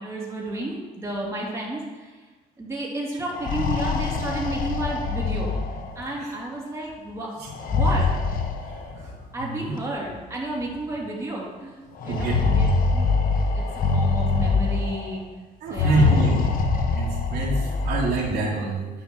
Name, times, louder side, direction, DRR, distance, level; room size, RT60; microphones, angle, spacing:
voice 1, 0.0-2.2 2.6-5.5 5.9-7.3 7.7-8.1 8.9-13.1 13.5-13.6 13.9-15.2 15.7-16.2 17.5-17.8, right 1 dB, 15° right, -5 dB, 3.2 m, -32 dB
sound 1, 3.2-6.1 7.5-9.2 10.2-10.3 10.6-10.7 12.0-15.1 15.7-18.3, left 4 dB, 55° left, 1.2 m, -24 dB
voice 2, 9.4-9.8 12.1-12.4 15.6-16.5 16.9-17.6 17.8-18.9, right 3 dB, 70° right, -5 dB, 2.6 m, -26 dB
9.9 x 5.7 x 6.4 m, 1.3 s
cardioid pair, 110°, 17 cm